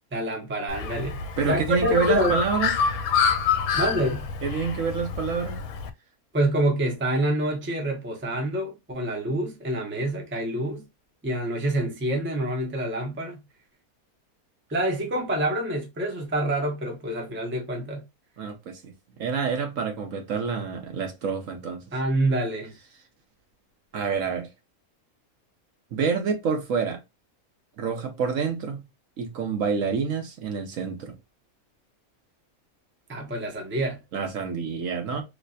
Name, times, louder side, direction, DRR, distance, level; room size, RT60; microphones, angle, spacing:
voice 1, 0.1-1.2 1.5-2.4 3.7-4.3 6.3-10.8 11.2-13.4 14.7-18.0 21.9-22.7 33.1-34.0, right 1 dB, 10° right, 0.7 m, -27 dB
Bird, 0.7-5.9, left 6 dB, 80° left, 1.0 m, -27 dB
voice 2, 1.4-2.7 4.4-5.6 18.4-18.9 19.2-21.9 23.9-24.5 25.9-27.0 27.8-28.8 29.2-31.2 34.1-35.2, right 5 dB, 65° right, 1.2 m, -27 dB
3.3 x 2.9 x 2.6 m
omnidirectional pair, 1.5 m